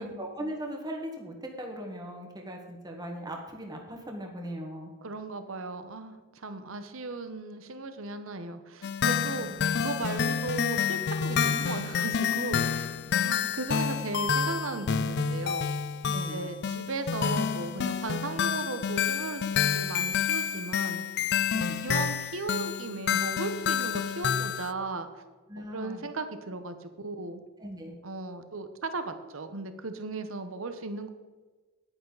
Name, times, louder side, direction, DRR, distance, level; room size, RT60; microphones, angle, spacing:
voice 1, 0.0-4.9 9.3-9.5 12.7-12.8 16.0-16.5 21.5-21.8 25.5-26.0 27.6-28.0, equal, 20° right, 1 dB, 1.6 m, -39 dB
voice 2, 5.0-9.5 9.8-12.9 13.2-15.7 16.1-19.4 19.7-21.0 21.6-25.2 25.6-27.4 28.0-31.1, right 3 dB, 65° right, 9 dB, 1.0 m, -36 dB
sound 1, 8.8-24.7, left 7 dB, 50° left, 0.4 m, -29 dB
Piano, 11.3-19.4, left 2 dB, 75° left, 2.7 m, -52 dB
10.5 x 9.9 x 4.0 m, 1.3 s
head